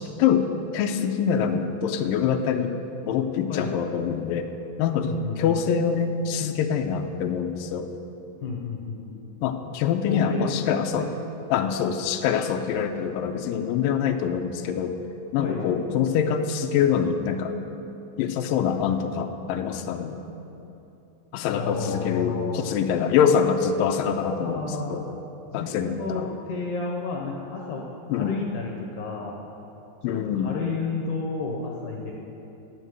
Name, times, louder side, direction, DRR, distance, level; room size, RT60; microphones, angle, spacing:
voice 1, 0.0-2.7 3.1-4.5 4.8-5.1 5.4-7.9 9.4-11.1 11.5-15.0 15.3-17.6 18.2-20.2 21.3-25.0 25.5-26.3 28.1-28.4 30.0-30.6, left 7 dB, 90° left, 4 dB, 2.0 m, -25 dB
voice 2, 5.0-5.7 8.4-9.3 10.1-10.5 11.0-11.1 15.4-15.7 21.5-22.7 24.3-25.0 25.5-29.4 30.3-32.1, left 4 dB, 75° left, 0 dB, 2.0 m, -32 dB
11.5 x 6.2 x 7.9 m, 2.9 s
omnidirectional pair, 4.6 m